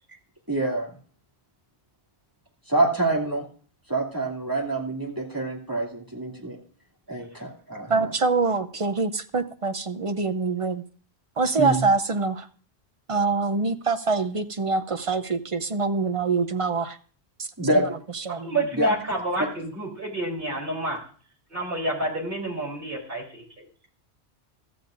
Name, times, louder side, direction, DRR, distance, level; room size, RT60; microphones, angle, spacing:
voice 1, 0.5-0.9 2.7-3.4 3.9-6.6 7.1-8.1 11.6-11.8 17.6-17.9 18.8-18.9 19.4-19.5, right 2 dB, 20° right, -1 dB, 2.5 m, -26 dB
voice 2, 7.9-10.8 11.4-12.5 13.1-17.0 17.4-17.5 18.1-18.5, right 4 dB, 35° right, 9 dB, 0.6 m, -25 dB
voice 3, 18.3-21.0 21.5-23.6, right 1 dB, 50° right, -1 dB, 3.8 m, -29 dB
15.5 x 13.0 x 2.6 m, 0.43 s
omnidirectional pair, 1.1 m